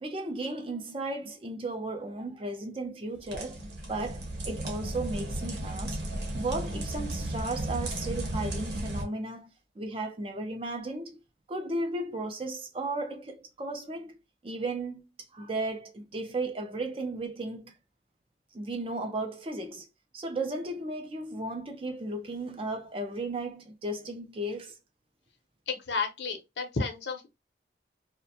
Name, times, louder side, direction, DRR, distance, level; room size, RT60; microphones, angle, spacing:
voice 1, 0.0-3.6 3.9-6.0 6.3-11.2 11.5-14.2 14.4-15.0 15.3-17.7 18.5-19.9 20.1-24.8, right 2 dB, 30° right, 0.4 m, -35 dB
sound 1, 3.2-9.0, right 1 dB, 75° right, 0.8 m, -34 dB
voice 2, 25.7-27.3, left 4 dB, 80° left, 0.7 m, -32 dB
2.4 x 2.1 x 2.6 m
head